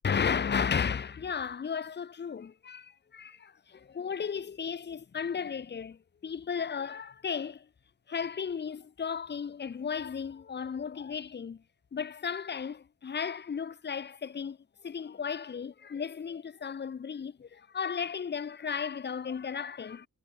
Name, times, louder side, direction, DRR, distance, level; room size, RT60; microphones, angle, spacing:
voice 1, 0.0-7.7 8.1-11.6 11.9-14.6 14.8-20.1, left 6 dB, 30° left, 0.7 m, -34 dB
wide cardioid pair, 165°, 34 cm